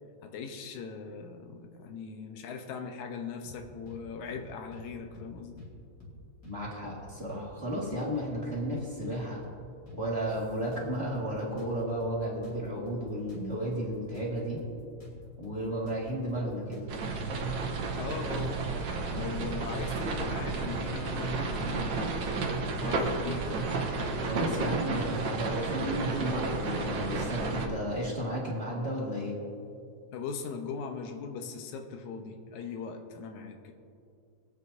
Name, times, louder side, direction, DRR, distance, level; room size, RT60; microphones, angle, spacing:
voice 1, 0.2-5.6 18.0-18.6 19.1-22.3 22.8-23.7 30.1-33.7, left 5 dB, 75° left, 5 dB, 2.2 m, -40 dB
sound 1, 3.4-4.0 4.3-4.5 4.7-5.7 6.0-6.2 6.4-7.5 7.7-7.9 8.1-9.2 9.4-9.6 9.9-11.3 11.6-14.3 14.6-14.7 15.0-17.0, left 2 dB, 30° left, 2.6 m, -49 dB
voice 2, 6.4-9.4 10.0-14.6 15.4-16.9 24.2-29.3, right 1 dB, 25° right, -4 dB, 1.5 m, -33 dB
sound 2, 16.9-27.7, right 3 dB, 75° right, 1.0 m, -32 dB
23.5 x 8.4 x 2.7 m, 2.5 s
omnidirectional pair, 3.6 m